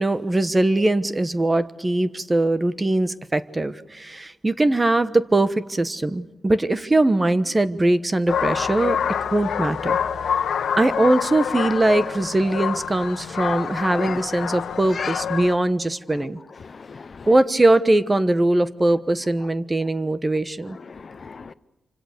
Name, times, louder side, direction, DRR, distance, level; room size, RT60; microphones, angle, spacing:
voice 1, 0.0-9.0 9.3-10.0 10.8-16.4 17.3-20.8, right 2 dB, 20° right, 1.1 m, -21 dB
sound 1, 8.3-15.6, left 7 dB, 80° left, 1.3 m, -26 dB
voice 2, 16.6-17.3 20.9-21.5, left 5 dB, 45° left, 0.9 m, -36 dB
27.5 x 25.5 x 6.7 m
cardioid pair, 100°, 0 cm